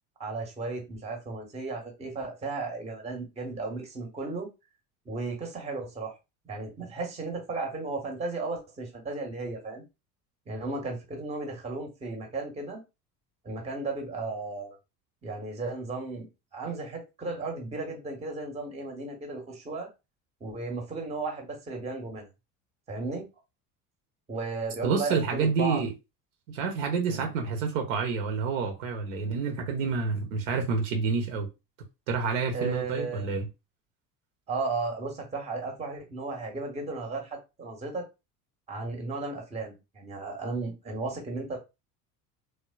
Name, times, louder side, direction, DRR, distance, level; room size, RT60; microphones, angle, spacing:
voice 1, 0.2-4.5 5.1-6.2 6.5-9.8 10.5-12.8 13.4-14.8 15.2-16.3 16.5-19.9 20.4-22.3 22.9-23.3 24.3-25.8 27.1-27.3 32.5-33.3 34.5-38.0 38.7-41.6, right 3 dB, 15° right, 0.8 m, -35 dB
voice 2, 24.8-25.9 26.5-31.5 32.1-33.5, right 5 dB, 55° right, 0.7 m, -28 dB
3.2 x 2.1 x 2.2 m
figure-of-eight pair, 65°, 47 cm